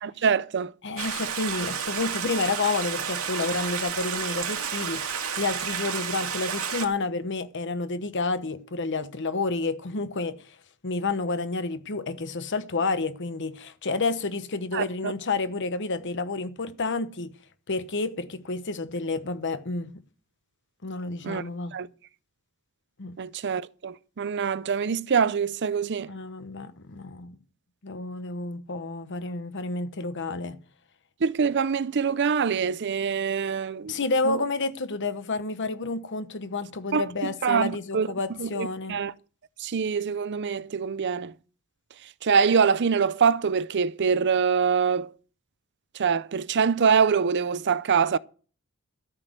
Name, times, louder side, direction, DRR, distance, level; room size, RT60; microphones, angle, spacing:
voice 1, 0.0-0.7 14.7-15.1 21.2-21.4 21.7-21.9 23.2-26.1 31.2-34.0 34.3-34.4 36.9-38.1 38.4-39.1 39.6-41.3 42.2-45.1 45.9-48.2, right 6 dB, 55° right, 0.5 m, -24 dB
voice 2, 0.8-10.6 10.8-17.4 17.7-20.0 20.8-21.8 23.0-23.2 26.1-27.3 27.8-30.6 33.9-39.0, left 3 dB, 60° left, 1.0 m, -30 dB
Stream, 1.0-6.9, right 7 dB, 90° right, 2.1 m, -31 dB
13.0 x 6.2 x 7.9 m
head